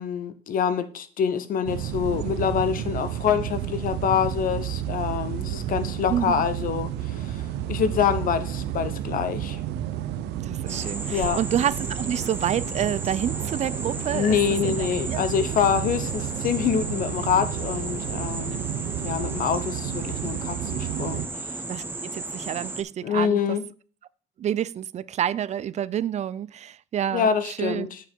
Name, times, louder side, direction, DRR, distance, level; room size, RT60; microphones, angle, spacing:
voice 1, 0.0-9.6 11.1-11.4 14.1-18.6 19.0-21.5 23.0-23.6 27.1-28.0, left 7 dB, 55° left, 1.1 m, -26 dB
sound 1, 1.7-21.3, right 11 dB, 80° right, 0.8 m, -31 dB
voice 2, 6.1-6.5 10.4-14.4 14.6-15.2 18.8-18.9 19.2-19.3 21.7-23.4 24.4-27.9, right 10 dB, 40° right, 0.4 m, -28 dB
sound 2, 10.7-22.8, right 2 dB, 10° right, 1.0 m, -35 dB
8.2 x 6.8 x 4.5 m
cardioid pair, 110°, 17 cm